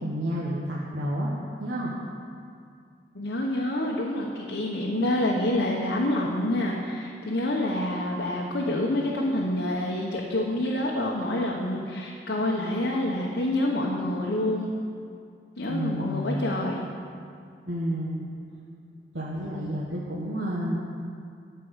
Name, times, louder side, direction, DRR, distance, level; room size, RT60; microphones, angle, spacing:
voice 1, 0.0-1.3 1.6-1.9 15.7-16.4 17.7-18.2 19.1-20.8, equal, 80° right, -4 dB, 1.3 m, -30 dB
voice 2, 3.1-14.7 15.6-16.9, left 1 dB, 85° left, -3 dB, 1.1 m, -27 dB
13.0 x 4.7 x 8.0 m, 2.4 s
head